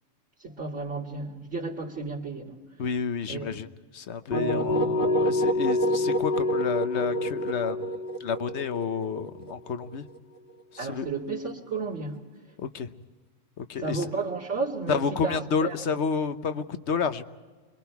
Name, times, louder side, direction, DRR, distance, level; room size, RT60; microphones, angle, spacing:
voice 1, 0.4-2.6 3.3-3.5 10.8-12.2 13.8-15.7, right 3 dB, 70° right, 2.8 m, -32 dB
voice 2, 2.8-3.7 3.9-7.8 8.2-10.0 10.7-11.1 12.6-12.9 13.6-14.0 14.9-17.3, left 5 dB, 65° left, 1.2 m, -30 dB
sound 1, 4.3-10.2, left 1 dB, 15° right, 1.1 m, -27 dB
29.5 x 23.0 x 4.7 m
omnidirectional pair, 1.3 m